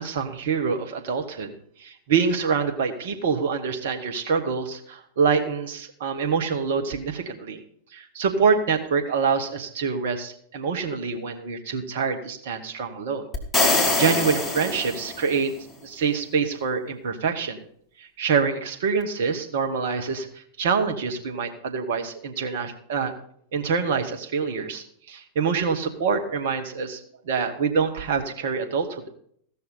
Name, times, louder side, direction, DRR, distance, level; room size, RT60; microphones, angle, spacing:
voice 1, 0.0-1.5 1.8-7.6 7.9-13.3 13.6-15.5 15.8-17.6 18.0-23.1 23.5-27.0 27.2-29.1, right 5 dB, 55° right, 5 dB, 1.3 m, -26 dB
sound 1, 13.3-15.4, left 2 dB, 10° left, 2.1 m, -23 dB
15.5 x 6.3 x 5.6 m, 0.64 s
figure-of-eight pair, 90°, 0 cm